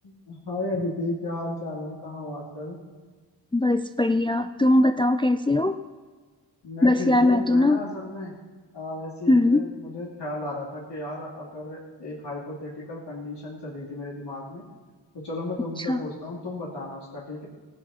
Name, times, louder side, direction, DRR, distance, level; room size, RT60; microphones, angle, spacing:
voice 1, 0.0-2.8 6.6-8.3 8.7-14.6 15.1-17.5, left 2 dB, 65° left, -5 dB, 2.7 m, -34 dB
voice 2, 3.5-5.8 6.8-7.8 9.3-9.6 15.8-16.0, left 2 dB, 15° left, 10 dB, 0.4 m, -20 dB
16.5 x 11.5 x 4.3 m, 1.4 s
wide cardioid pair, 100°, 43 cm